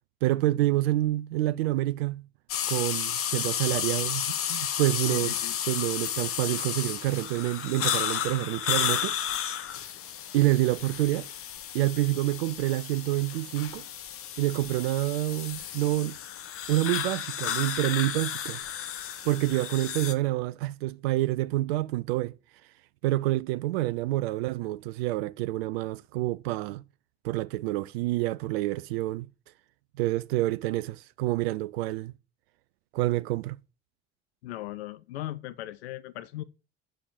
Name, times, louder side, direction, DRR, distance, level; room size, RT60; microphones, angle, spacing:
voice 1, 0.2-2.2 2.7-5.3 5.7-9.6 10.3-11.3 11.7-13.8 14.4-16.2 16.7-18.6 19.2-22.4 23.0-26.8 27.2-29.3 30.0-32.1 32.9-33.6, right 17 dB, 65° right, 0.5 m, -27 dB
sound 1, 2.5-20.1, left 9 dB, 40° left, 1.1 m, -32 dB
voice 2, 5.1-5.6 34.4-36.4, left 14 dB, 70° left, 0.7 m, -38 dB
7.9 x 6.2 x 7.3 m
figure-of-eight pair, 60°, 33 cm